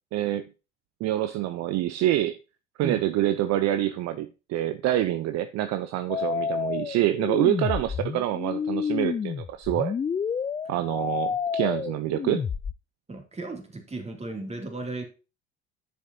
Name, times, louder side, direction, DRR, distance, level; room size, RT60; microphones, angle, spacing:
voice 1, 0.1-0.4 1.0-2.4 2.8-9.9 10.7-12.5, right 13 dB, 55° right, 0.7 m, -26 dB
sound 1, 6.1-12.7, left 6 dB, 15° left, 0.3 m, -29 dB
voice 2, 13.1-15.0, right 3 dB, 20° right, 2.6 m, -35 dB
9.9 x 6.9 x 2.8 m
hypercardioid pair, 70°, 32 cm